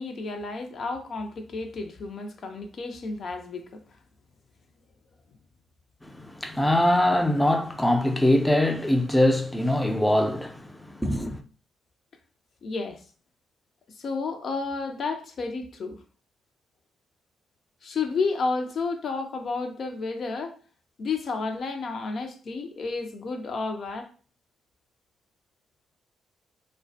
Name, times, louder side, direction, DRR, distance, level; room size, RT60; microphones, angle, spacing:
voice 1, 0.0-3.8 12.6-13.0 14.0-16.0 17.8-20.5 21.0-24.1, left 4 dB, 60° left, 0.5 m, -31 dB
voice 2, 6.0-10.6 11.0-11.4, left 1 dB, 10° left, 0.5 m, -22 dB
2.3 x 2.1 x 2.6 m
hypercardioid pair, 45°, 0 cm